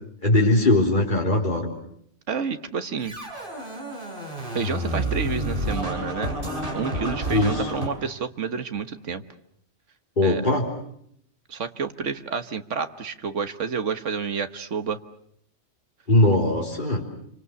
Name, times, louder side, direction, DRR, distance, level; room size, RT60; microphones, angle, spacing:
voice 1, 0.2-1.7 7.3-7.7 10.2-10.7 16.1-17.1, left 1 dB, 40° left, -2 dB, 4.0 m, -20 dB
voice 2, 2.3-3.2 4.5-6.3 6.7-9.2 10.2-10.4 11.5-15.0, right 6 dB, 85° right, 9 dB, 1.7 m, -29 dB
Scratching (performance technique), 3.0-7.9, right 1 dB, 45° right, 6.3 m, -29 dB
28.5 x 25.0 x 6.9 m, 0.70 s
omnidirectional pair, 1.2 m